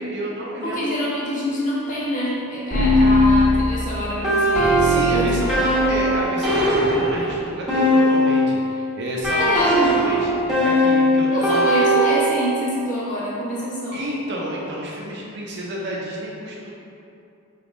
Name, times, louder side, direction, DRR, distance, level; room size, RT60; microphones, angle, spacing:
voice 1, 0.0-0.9 4.8-5.6 5.9-11.7 13.9-16.7, right 1 dB, 55° right, -4 dB, 0.5 m, -30 dB
voice 2, 0.6-5.8 9.4-9.9 11.3-14.0, equal, 35° left, -7 dB, 0.8 m, -25 dB
sound 1, 2.7-8.6 9.2-12.4, equal, ahead, 0.9 m, -19 dB
4.0 x 3.4 x 2.5 m, 2.7 s
head